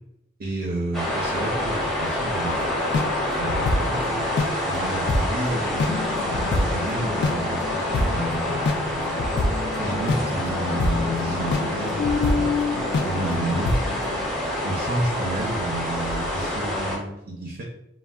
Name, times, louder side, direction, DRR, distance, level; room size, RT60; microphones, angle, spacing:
voice 1, 0.4-2.6 3.4-6.0 6.4-8.5 9.3-13.7 14.6-17.6, right 2 dB, 55° right, 0 dB, 0.4 m, -31 dB
sound 1, 0.9-17.0, left 1 dB, ahead, 0.6 m, -27 dB
sound 2, 2.5-4.5 5.1-5.2 5.6-14.3, left 3 dB, 60° left, 0.3 m, -26 dB
3.5 x 2.1 x 2.3 m, 0.86 s
head